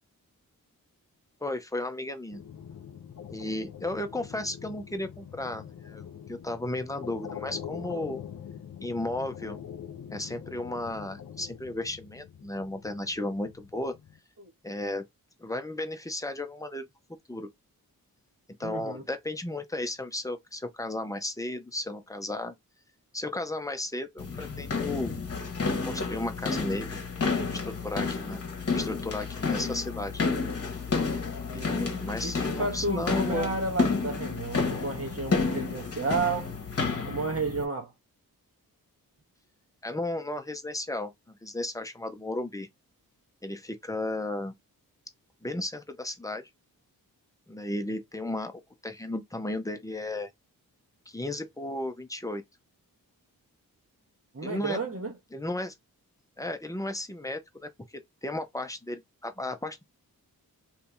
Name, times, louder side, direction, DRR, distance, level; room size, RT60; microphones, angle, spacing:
voice 1, 1.4-2.4 3.3-8.2 8.8-9.6 10.1-13.9 14.6-15.0 15.4-16.9 17.3-17.5 18.6-22.5 23.1-25.1 25.9-28.4 28.7-30.4 31.5-33.5 39.8-42.7 43.4-44.5 45.4-46.4 47.5-48.5 48.8-50.3 51.1-52.4 54.4-54.8 55.3-55.7 56.4-57.7 58.2-59.8, left 1 dB, 10° left, 0.7 m, -34 dB
sound 1, 2.3-14.2, left 9 dB, 60° left, 0.7 m, -44 dB
voice 2, 18.6-19.0 31.5-32.0 32.2-36.5 37.0-37.9 54.3-55.1, right 3 dB, 40° right, 1.2 m, -32 dB
sound 2, 24.2-37.6, left 4 dB, 40° left, 1.1 m, -30 dB
2.8 x 2.8 x 3.5 m
cardioid pair, 80°, 36 cm